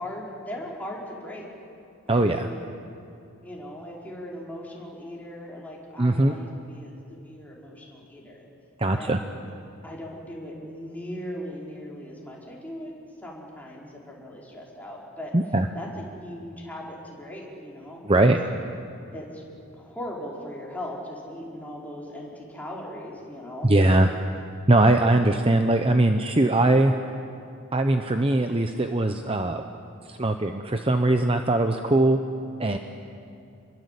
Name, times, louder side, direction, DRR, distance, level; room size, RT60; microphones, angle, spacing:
voice 1, 0.0-1.5 2.1-2.6 3.4-8.5 8.9-9.4 9.8-12.9 13.2-15.3 15.7-18.3 19.1-19.4 19.7-23.7, left 1 dB, 5° left, -4 dB, 5.0 m, -39 dB
voice 2, 2.1-2.5 6.0-6.4 8.8-9.2 15.3-15.7 18.0-18.4 23.6-24.1 24.7-26.9 27.7-29.6 30.1-32.2 32.6-32.8, right 2 dB, 25° right, 6 dB, 0.9 m, -21 dB
29.0 x 22.0 x 8.4 m, 2.6 s
head